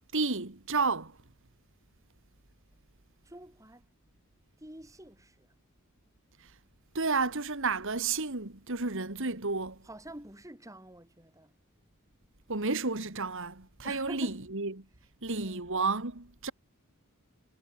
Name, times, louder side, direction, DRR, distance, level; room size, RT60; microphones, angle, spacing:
voice 1, 0.1-1.2 6.4-6.5 6.9-9.8 12.5-14.8 15.2-16.5, right 4 dB, 60° right, 2.2 m, -31 dB
voice 2, 3.2-3.8 4.6-5.5 9.8-11.5 13.8-14.3 15.4-15.8, right 1 dB, 15° right, 5.7 m, -47 dB
head